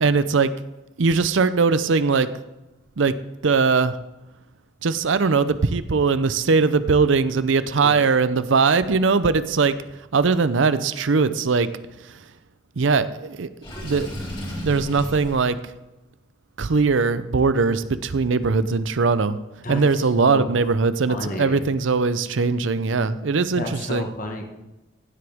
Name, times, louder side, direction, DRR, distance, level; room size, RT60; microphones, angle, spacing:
voice 1, 0.0-0.5 1.0-2.3 3.0-3.1 3.4-4.0 4.8-9.8 10.1-11.7 12.8-13.5 13.8-14.1 14.6-15.6 16.6-19.4 19.7-23.6 23.9-24.1, right 4 dB, 75° right, 14 dB, 0.6 m, -20 dB
Water / Sink (filling or washing), 13.6-15.4, equal, 25° left, 2.4 m, -33 dB
voice 2, 19.6-20.6 21.1-21.6 23.6-24.5, left 1 dB, 40° left, 3 dB, 1.4 m, -32 dB
15.5 x 7.9 x 3.5 m, 1.0 s
head